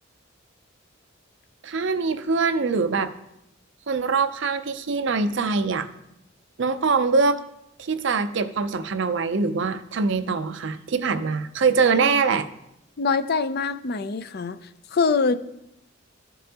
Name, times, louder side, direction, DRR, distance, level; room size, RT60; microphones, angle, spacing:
voice 1, 1.6-3.1 3.9-5.9 6.6-7.4 7.8-12.5, right 4 dB, 60° right, 10 dB, 0.5 m, -23 dB
voice 2, 13.0-14.6 14.9-15.4, left 4 dB, 50° left, 12 dB, 0.4 m, -24 dB
14.0 x 5.4 x 2.9 m, 0.83 s
head